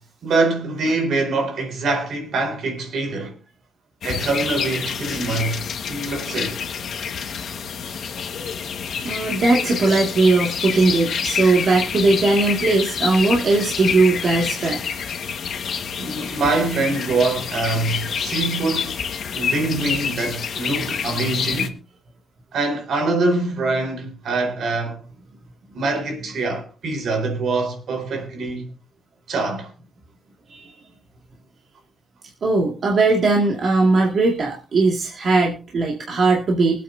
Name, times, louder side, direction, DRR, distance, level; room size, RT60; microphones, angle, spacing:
voice 1, 0.2-3.4 4.0-6.6 15.7-19.1 19.3-21.8 22.5-25.0 25.7-28.7 29.3-29.7, right 3 dB, 65° right, 4.4 m, -24 dB
sound 1, 4.0-21.7, left 7 dB, 60° left, 1.6 m, -28 dB
voice 2, 9.0-14.8 30.5-30.7 32.4-36.8, right 3 dB, 45° right, 2.2 m, -19 dB
24.5 x 8.7 x 2.7 m
wide cardioid pair, 165°, 0 cm